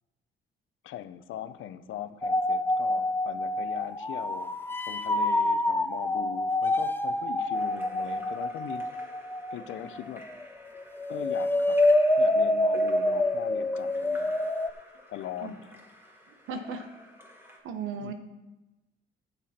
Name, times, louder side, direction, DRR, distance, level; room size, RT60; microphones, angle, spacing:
voice 1, 0.8-4.5 4.8-8.9 9.5-10.2 11.1-11.8 12.2-14.3 15.1-15.9 18.0-18.1, left 11 dB, 80° left, 12 dB, 0.7 m, -40 dB
sound 1, 2.2-10.5 10.8-14.7, left 1 dB, 10° left, 0.7 m, -27 dB
Splash splatter / Drip / Trickle dribble, 7.5-17.6, left 1 dB, 10° right, 2.3 m, -50 dB
voice 2, 16.5-16.8 17.6-18.1, right 5 dB, 85° right, 8 dB, 1.1 m, -35 dB
14.5 x 6.9 x 4.3 m, 1.0 s
cardioid pair, 90°, 20 cm